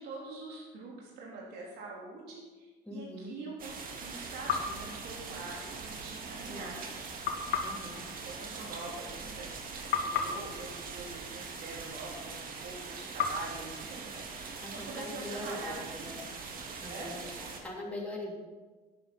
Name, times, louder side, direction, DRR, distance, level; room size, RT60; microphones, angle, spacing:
voice 1, 0.0-7.0 8.2-16.1 16.9-17.2, right 3 dB, 80° right, -3 dB, 3.4 m, -45 dB
voice 2, 2.9-3.3 6.5-6.7 7.6-8.1 14.6-16.2 16.8-18.3, left 1 dB, 10° left, -3 dB, 3.1 m, -42 dB
sound 1, 3.6-17.6, right 4 dB, 55° right, 2.2 m, -42 dB
sound 2, 4.5-5.8 7.2-9.6 9.9-12.2 13.2-15.0, left 6 dB, 80° left, 1.6 m, -37 dB
11.5 x 9.5 x 6.0 m, 1.3 s
cardioid pair, 110°, 17 cm